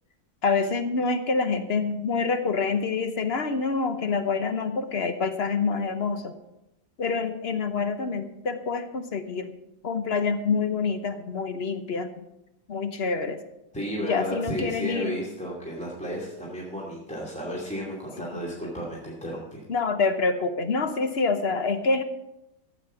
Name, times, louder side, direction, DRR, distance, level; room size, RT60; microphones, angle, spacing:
voice 1, 0.4-6.3 7.0-9.5 9.8-12.2 12.7-13.4 14.0-15.2 19.7-22.0, left 4 dB, 50° left, 9 dB, 0.8 m, -26 dB
voice 2, 13.7-19.6, equal, 5° left, -4 dB, 2.4 m, -33 dB
14.5 x 8.7 x 5.7 m, 0.91 s
omnidirectional pair, 2.0 m